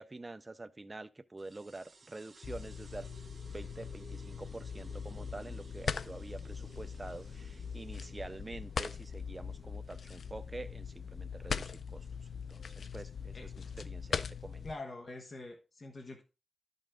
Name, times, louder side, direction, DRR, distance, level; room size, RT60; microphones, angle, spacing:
voice 1, 0.0-3.1 3.5-12.1 12.3-13.5 13.9-14.1 14.4-14.7, right 2 dB, 25° right, 0.4 m, -47 dB
sound 1, 1.4-12.4, right 4 dB, 45° right, 1.3 m, -59 dB
sound 2, 2.4-14.7, left 6 dB, 70° left, 0.4 m, -41 dB
voice 2, 14.6-16.2, left 2 dB, 40° left, 1.1 m, -45 dB
11.5 x 5.4 x 3.6 m
wide cardioid pair, 150°, 0 cm